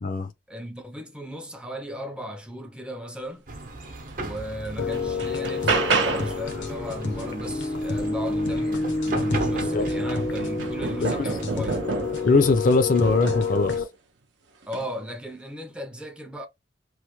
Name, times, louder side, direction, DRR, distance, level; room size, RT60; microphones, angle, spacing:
voice 1, 0.5-3.5 4.2-11.9 14.7-16.5, equal, 5° right, 0.4 m, -36 dB
sound 1, 3.5-13.8, right 2 dB, 50° right, 0.7 m, -38 dB
sound 2, 4.1-4.2 4.7-6.5 8.8-8.9 9.4-12.3 13.1-13.6 14.6-14.9, right 4 dB, 85° right, 0.7 m, -29 dB
sound 3, 4.8-13.8, left 3 dB, 90° left, 0.8 m, -28 dB
voice 2, 9.6-10.2 11.0-11.3 12.2-13.8, left 3 dB, 50° left, 0.4 m, -22 dB
3.1 x 2.1 x 2.9 m
head